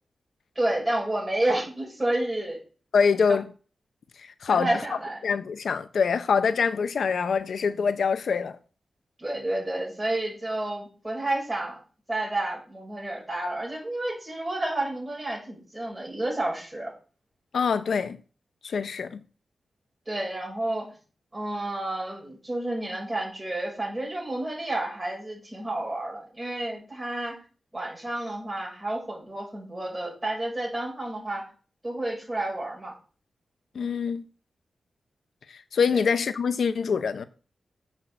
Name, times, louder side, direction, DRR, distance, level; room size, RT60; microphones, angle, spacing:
voice 1, 0.6-2.6 4.5-5.2 9.2-11.8 12.1-16.9 20.1-20.9 21.3-27.4 27.7-31.5 31.8-32.9 35.9-36.0, right 1 dB, 15° right, 6.1 m, -30 dB
voice 2, 2.9-3.5 4.2-4.7 5.2-8.6 17.5-18.2 18.6-19.2 33.7-34.2 35.5-37.2, left 6 dB, 70° left, 0.7 m, -25 dB
7.7 x 6.2 x 7.8 m
wide cardioid pair, 140°, 0 cm